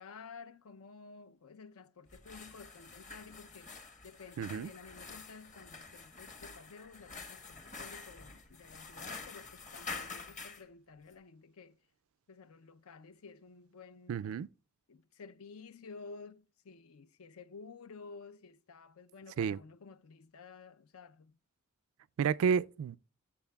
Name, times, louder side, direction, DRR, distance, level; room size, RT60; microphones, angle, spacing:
voice 1, 0.0-11.8 12.3-14.2 14.9-21.4, left 4 dB, 75° left, 0.5 m, -52 dB
sound 1, 2.1-10.6, left 4 dB, 35° left, 1.1 m, -47 dB
voice 2, 4.4-4.7 14.1-14.5 19.4-19.6 22.2-23.0, right 6 dB, 70° right, 0.3 m, -31 dB
14.0 x 7.2 x 2.3 m
head